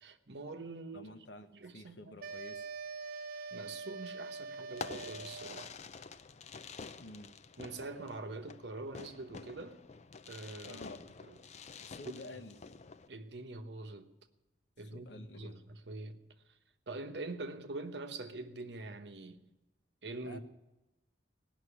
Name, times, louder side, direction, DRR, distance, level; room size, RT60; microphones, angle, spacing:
voice 1, 0.0-1.1 1.5-2.1 3.5-5.7 7.6-9.8 10.3-11.4 12.0-12.1 13.1-14.2 14.8-16.2 16.9-19.5 20.0-20.4, right 2 dB, 70° right, 1.0 m, -44 dB
voice 2, 0.9-2.7 7.0-7.3 10.6-11.0 11.8-12.6 14.9-15.6 20.2-20.4, left 2 dB, 90° left, 1.0 m, -50 dB
sound 1, 2.2-5.7, right 4 dB, 55° right, 0.4 m, -44 dB
Fireworks, 4.7-13.1, left 5 dB, 40° left, 0.5 m, -48 dB
18.0 x 6.0 x 9.8 m
head